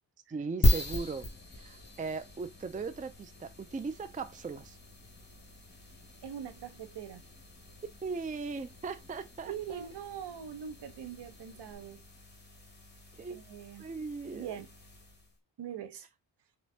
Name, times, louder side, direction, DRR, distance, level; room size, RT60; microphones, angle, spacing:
voice 1, 0.3-4.8 8.0-9.9 13.2-13.4 13.8-14.6, right 4 dB, 20° right, 0.5 m, -39 dB
sound 1, 0.6-15.4, left 1 dB, 25° left, 2.0 m, -37 dB
voice 2, 6.2-7.2 9.5-12.0 13.3-13.9 14.3-14.7 15.6-16.1, right 9 dB, 65° right, 1.1 m, -42 dB
4.4 x 3.1 x 2.8 m
supercardioid pair, 55°, 44 cm